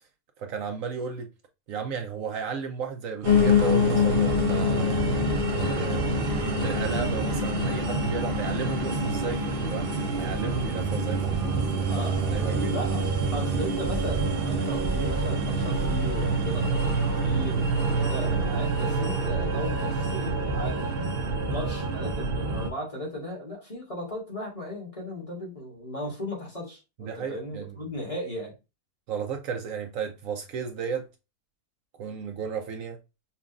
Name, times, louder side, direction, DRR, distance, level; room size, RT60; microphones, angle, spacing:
voice 1, 0.4-1.3 1.7-5.0 5.5-9.9 10.2-12.0 12.3-12.8 27.0-27.8 29.1-31.1 32.0-33.0, right 6 dB, 70° right, 1.0 m, -34 dB
Piano, 3.2-12.3 12.7-13.9 14.2-14.3 14.5-14.6 14.9-15.0 15.5-15.6, left 10 dB, 45° left, 0.6 m, -28 dB
sound 1, 3.2-22.7, right 4 dB, 55° right, 0.7 m, -27 dB
voice 2, 11.9-13.0 13.3-20.9 21.5-28.5, left 1 dB, 25° left, 1.2 m, -36 dB
5.7 x 2.3 x 2.5 m
omnidirectional pair, 1.6 m